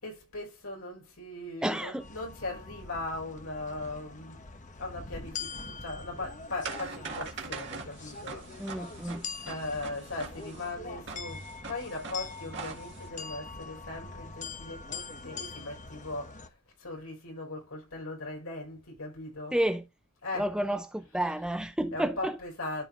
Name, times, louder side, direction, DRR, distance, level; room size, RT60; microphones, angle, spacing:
voice 1, 0.0-4.4 4.8-9.1 9.4-16.5 16.8-19.6 20.2-20.5 21.1-21.3 21.9-22.8, left 2 dB, 70° left, 4.6 m, -39 dB
voice 2, 1.6-2.1 8.6-9.3 19.5-19.9 20.4-22.4, right 1 dB, 5° right, 0.4 m, -30 dB
sound 1, 2.0-16.5, left 4 dB, 35° left, 1.2 m, -43 dB
sound 2, 5.0-13.1, right 4 dB, 55° right, 1.9 m, -43 dB
13.0 x 4.6 x 2.5 m
head